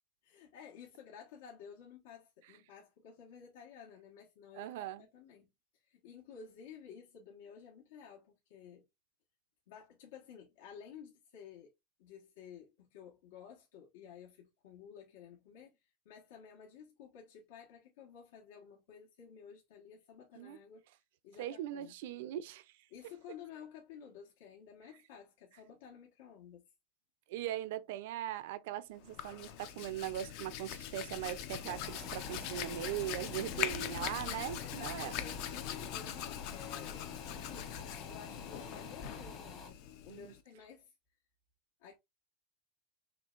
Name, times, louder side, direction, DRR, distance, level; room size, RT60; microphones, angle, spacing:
voice 1, 0.2-4.7 5.0-5.5 5.8-8.8 9.7-11.7 12.0-20.8 21.2-21.9 22.9-26.7 33.5-40.9 41.8-42.0, left 7 dB, 75° left, 1.3 m, -53 dB
voice 2, 4.5-5.1 20.4-20.6 21.4-22.7 27.3-35.1 40.1-40.3, right 12 dB, 60° right, 0.4 m, -40 dB
Hands, 29.0-40.4, left 10 dB, 45° left, 0.5 m, -42 dB
sound 1, 31.5-39.7, left 4 dB, 25° left, 1.0 m, -50 dB
4.4 x 3.2 x 2.4 m
supercardioid pair, 180°, 0 cm